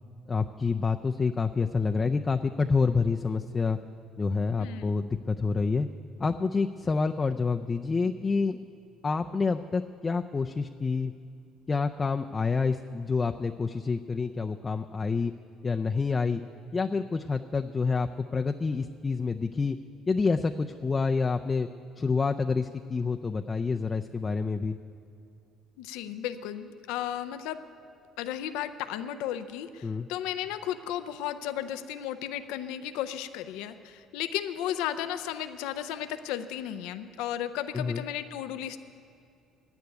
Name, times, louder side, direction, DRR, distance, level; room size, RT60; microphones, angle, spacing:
voice 1, 0.3-3.8 4.2-5.9 6.2-8.6 9.0-11.1 11.7-15.3 15.6-16.4 16.7-19.8 20.1-21.7 22.0-24.8 29.8-30.1 37.7-38.0, left 4 dB, 30° left, 5 dB, 0.4 m, -28 dB
voice 2, 4.6-4.9 25.8-27.6 28.2-38.8, left 11 dB, 85° left, 10 dB, 0.5 m, -34 dB
10.5 x 9.6 x 9.1 m, 2.5 s
supercardioid pair, 85°, 0 cm